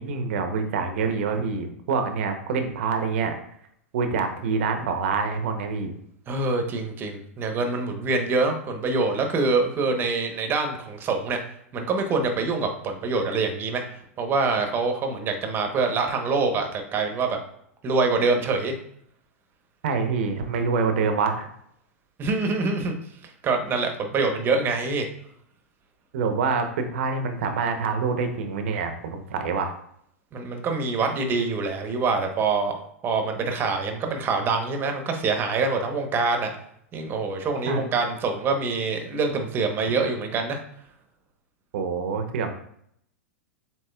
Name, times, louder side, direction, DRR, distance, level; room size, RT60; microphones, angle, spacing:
voice 1, 0.0-3.3 3.9-5.9 19.8-21.5 26.1-29.7 37.7-37.9 41.7-42.5, right 5 dB, 60° right, 6 dB, 0.8 m, -26 dB
voice 2, 6.3-11.4 11.7-13.8 14.2-17.4 17.8-18.7 22.2-22.9 23.2-25.1 30.3-36.5 36.9-40.6, right 4 dB, 30° right, 4 dB, 1.0 m, -25 dB
7.5 x 2.9 x 2.3 m, 0.69 s
figure-of-eight pair, 95°, 8 cm